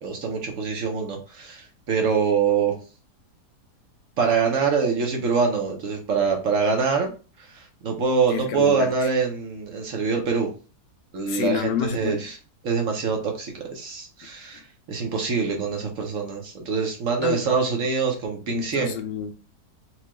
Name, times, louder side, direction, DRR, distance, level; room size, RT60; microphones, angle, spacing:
voice 1, 0.0-2.7 4.2-7.1 7.5-10.5 11.1-12.4 12.6-14.6 14.9-18.9, right 5 dB, 60° right, 1.0 m, -24 dB
voice 2, 8.3-8.9 11.3-12.3 17.2-17.4 18.5-19.3, left 8 dB, 90° left, 1.3 m, -28 dB
4.3 x 2.3 x 2.9 m
omnidirectional pair, 1.8 m